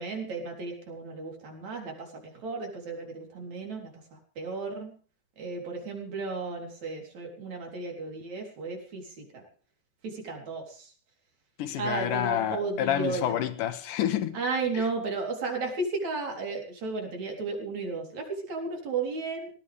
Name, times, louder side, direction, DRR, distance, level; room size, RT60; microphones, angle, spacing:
voice 1, 0.0-4.9 5.4-9.4 10.0-10.9 11.8-13.3 14.3-19.5, right 3 dB, 60° right, 5.0 m, -34 dB
voice 2, 11.6-14.4 14.7-14.9, left 11 dB, 90° left, 2.9 m, -29 dB
19.0 x 18.5 x 3.5 m
omnidirectional pair, 3.6 m